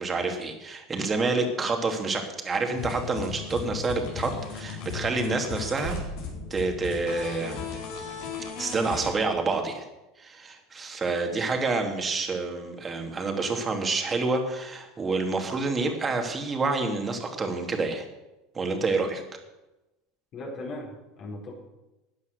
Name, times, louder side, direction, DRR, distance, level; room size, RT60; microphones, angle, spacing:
voice 1, 0.0-6.0 6.5-7.6 8.6-9.8 10.2-18.0 18.5-19.2, right 3 dB, 25° right, 4 dB, 2.7 m, -28 dB
sound 1, 2.7-9.1, left 5 dB, 70° left, 4.6 m, -36 dB
sound 2, 2.7-6.4, right 3 dB, 60° right, 2.3 m, -42 dB
voice 2, 20.3-21.5, left 2 dB, 50° left, -2 dB, 4.4 m, -38 dB
13.5 x 9.3 x 6.5 m, 1.0 s
hypercardioid pair, 85°, 0 cm